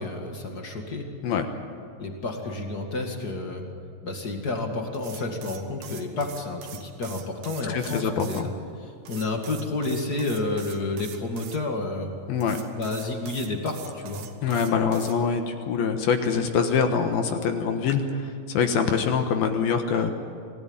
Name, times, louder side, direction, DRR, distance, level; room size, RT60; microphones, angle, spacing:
voice 1, 0.0-1.1 2.0-3.6 4.0-8.5 8.8-12.2 12.7-14.3, left 2 dB, 40° left, 3 dB, 1.5 m, -30 dB
sound 1, 4.9-8.4 9.0-11.6 12.4-15.2, right 9 dB, 65° right, 3.1 m, -43 dB
voice 2, 7.7-8.5 12.3-12.6 14.4-20.1, left 6 dB, 65° left, 6 dB, 2.8 m, -24 dB
26.5 x 18.0 x 9.0 m, 2.3 s
omnidirectional pair, 5.1 m